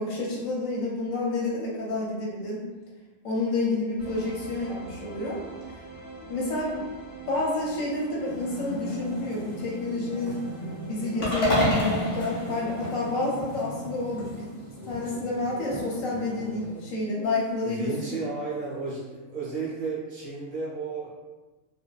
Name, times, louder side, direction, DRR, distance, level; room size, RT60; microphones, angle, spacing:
voice 1, 0.0-2.6 3.2-5.4 6.2-6.9 7.3-10.4 10.9-14.5 14.9-18.2, left 2 dB, 85° left, -4 dB, 1.1 m, -29 dB
sound 1, 4.0-16.9, right 4 dB, 10° right, 0.9 m, -46 dB
sound 2, 8.1-17.0, equal, 30° left, 0.5 m, -39 dB
sound 3, 11.2-13.5, left 1 dB, 55° left, 0.9 m, -27 dB
voice 2, 17.6-21.1, right 3 dB, 50° right, -7 dB, 0.6 m, -33 dB
2.5 x 2.2 x 2.3 m, 1.2 s
omnidirectional pair, 1.4 m